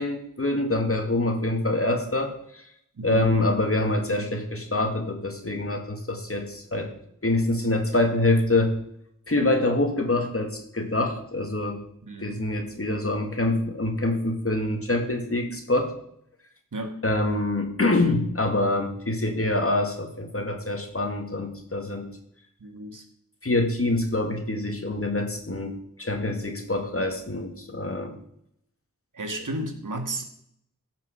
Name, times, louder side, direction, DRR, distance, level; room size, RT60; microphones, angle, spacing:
voice 1, 0.0-2.6 3.0-6.9 7.2-8.7 9.3-11.8 12.2-15.9 17.0-22.1 23.4-28.1, left 2 dB, 45° left, 4 dB, 2.3 m, -25 dB
voice 2, 3.0-3.3 12.0-12.5 16.7-17.0 22.6-23.0 29.1-30.3, right 1 dB, 65° right, 5 dB, 2.0 m, -33 dB
15.5 x 5.9 x 6.4 m, 0.72 s
wide cardioid pair, 50°, 33 cm